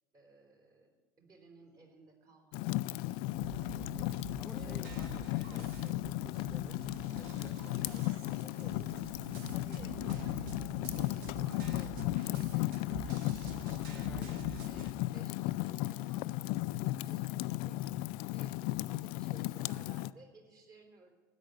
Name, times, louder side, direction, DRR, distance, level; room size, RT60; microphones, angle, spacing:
voice 1, 0.1-3.2 4.5-5.0 8.4-8.9 9.5-12.0 12.2-13.9 14.6-17.9 18.3-21.1, right 2 dB, 35° right, 3 dB, 3.8 m, -58 dB
Fire, 2.5-20.1, left 17 dB, 50° left, 0.4 m, -36 dB
sound 1, 3.3-14.9, right 4 dB, 55° right, 1.4 m, -47 dB
voice 2, 3.7-4.1 4.4-6.8 7.1-8.2 13.9-14.4, left 1 dB, ahead, 6 dB, 0.6 m, -53 dB
sound 2, 6.9-12.2, left 1 dB, 80° left, 0.8 m, -55 dB
13.0 x 10.5 x 8.6 m, 1.3 s
figure-of-eight pair, 75°, 11 cm